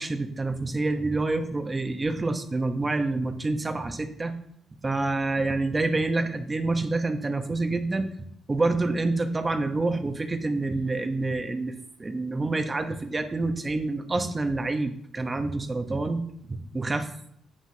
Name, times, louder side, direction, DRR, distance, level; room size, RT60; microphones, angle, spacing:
voice 1, 0.0-4.3 4.8-8.1 8.5-11.7 12.0-16.2 16.5-17.1, right 2 dB, 25° right, 7 dB, 1.0 m, -27 dB
9.5 x 9.3 x 2.9 m, 0.69 s
cardioid pair, 90°, 0 cm